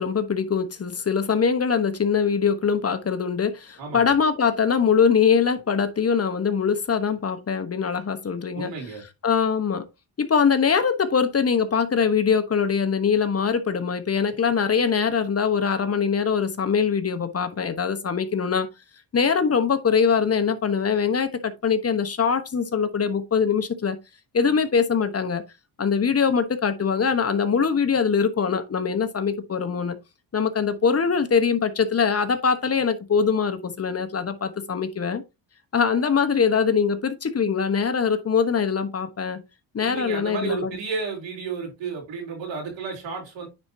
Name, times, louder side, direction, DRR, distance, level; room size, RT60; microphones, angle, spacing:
voice 1, 0.0-8.7 9.2-9.9 10.2-18.7 19.1-24.0 24.3-25.4 25.8-30.0 30.3-35.2 35.7-39.4 39.7-40.8, left 6 dB, 35° left, 1.1 m, -22 dB
voice 2, 3.8-4.2 8.5-9.0 39.8-43.5, right 5 dB, 85° right, 3.9 m, -32 dB
9.7 x 4.3 x 2.8 m
cardioid pair, 95°, 44 cm